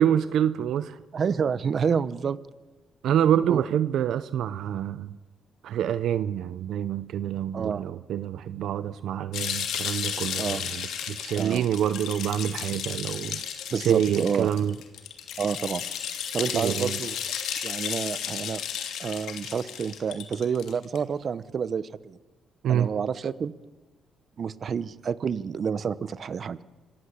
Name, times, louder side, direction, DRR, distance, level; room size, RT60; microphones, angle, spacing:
voice 1, 0.0-1.0 3.0-5.1 5.6-13.4 13.8-14.7 16.5-17.0 22.6-22.9, right 10 dB, 75° right, 14 dB, 0.7 m, -26 dB
voice 2, 1.1-2.4 3.5-3.6 7.5-7.8 10.4-10.6 11.4-11.6 13.7-14.5 15.4-15.8 16.3-17.2 17.6-18.6 19.0-22.2 22.7-23.5 24.4-26.6, right 6 dB, 50° right, 16 dB, 1.0 m, -29 dB
sound 1, 9.3-21.0, left 9 dB, 80° left, 2.7 m, -33 dB
26.0 x 16.5 x 8.3 m, 1.2 s
cardioid pair, 90°, 0 cm